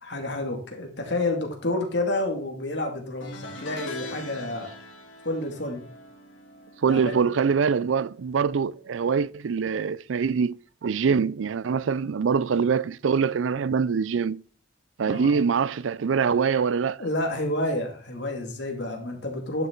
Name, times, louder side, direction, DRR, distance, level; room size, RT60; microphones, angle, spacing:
voice 1, 0.0-4.7 5.2-5.9 6.9-7.2 15.1-15.4 17.0-19.7, left 1 dB, 60° left, 2.4 m, -29 dB
sound 1, 3.2-8.6 8.9-9.2 10.5-10.6, left 1 dB, 75° left, 2.6 m, -42 dB
voice 2, 6.8-10.6 10.8-14.4 15.0-17.0, right 6 dB, 80° right, 0.4 m, -24 dB
11.0 x 6.9 x 3.9 m
head